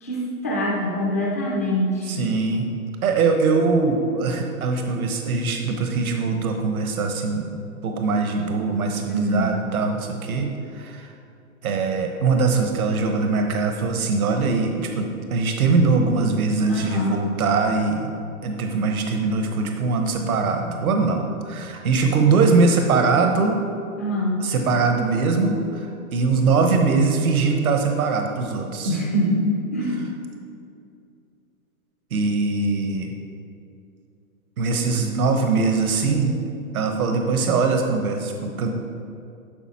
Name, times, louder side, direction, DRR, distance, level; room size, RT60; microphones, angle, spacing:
voice 1, 0.0-2.2 9.1-9.5 16.7-17.2 24.0-24.4 28.8-30.1, equal, 10° left, -3 dB, 0.3 m, -24 dB
voice 2, 2.1-2.6 3.0-7.5 7.8-11.1 11.6-18.1 18.4-23.6 24.4-29.0 32.1-33.1 34.6-36.3 36.7-38.7, right 4 dB, 80° right, 4 dB, 1.2 m, -22 dB
12.0 x 5.3 x 4.3 m, 2.5 s
hypercardioid pair, 145°, 43 cm